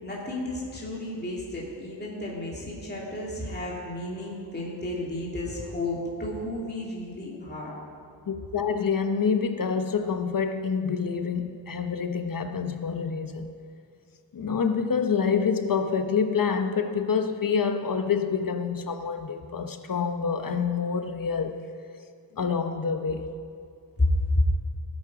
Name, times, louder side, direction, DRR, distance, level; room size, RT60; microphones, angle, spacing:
voice 1, 0.0-7.7 24.0-24.4, left 1 dB, 20° left, -5 dB, 2.6 m, -31 dB
voice 2, 8.3-13.5 14.3-21.5 22.3-23.2, left 6 dB, 45° left, 7 dB, 1.0 m, -27 dB
18.0 x 8.7 x 4.9 m, 2.4 s
wide cardioid pair, 105°, 47 cm